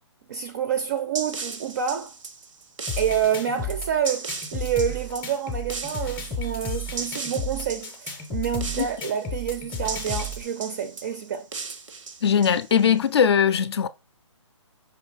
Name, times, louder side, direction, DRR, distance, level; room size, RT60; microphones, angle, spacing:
voice 1, 0.3-2.1 3.0-11.5, right 8 dB, 35° right, 0.4 m, -28 dB
sound 1, 0.8-13.0, right 4 dB, 80° right, 0.7 m, -37 dB
sound 2, 2.9-10.4, left 2 dB, 10° left, 0.6 m, -33 dB
voice 2, 12.2-13.9, left 7 dB, 55° left, 0.4 m, -20 dB
5.0 x 2.8 x 3.2 m
hypercardioid pair, 150°, 16 cm